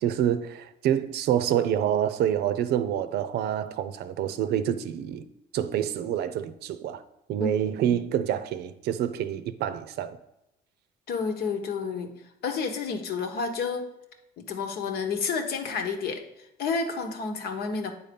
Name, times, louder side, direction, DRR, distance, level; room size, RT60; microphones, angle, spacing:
voice 1, 0.0-5.2 5.5-7.0 7.3-10.2, right 10 dB, 75° right, 0.6 m, -27 dB
voice 2, 7.4-8.0 11.1-12.1 12.4-13.9 14.4-17.9, left 5 dB, 70° left, 1.1 m, -30 dB
8.9 x 4.3 x 5.2 m
cardioid pair, 110°, 17 cm